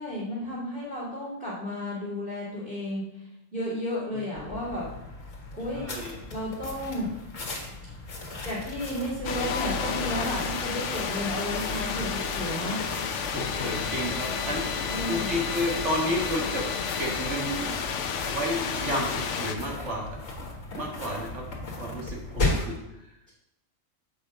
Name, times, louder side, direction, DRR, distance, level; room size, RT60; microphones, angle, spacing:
voice 1, 0.0-3.0 3.5-4.9 5.5-5.9 6.3-7.1 8.4-12.8 14.9-15.5, left 1 dB, 5° left, -11 dB, 2.8 m, -33 dB
sound 1, 4.3-22.8, left 2 dB, 85° left, 1.9 m, -36 dB
voice 2, 5.7-6.2 10.9-11.0 13.3-14.8 15.1-16.6 17.0-17.8 18.3-20.2 20.8-21.4 21.8-22.8, equal, 65° right, -2 dB, 2.2 m, -31 dB
sound 2, 9.2-19.5, left 6 dB, 70° left, 1.0 m, -31 dB
7.5 x 5.4 x 5.1 m, 0.86 s
omnidirectional pair, 1.3 m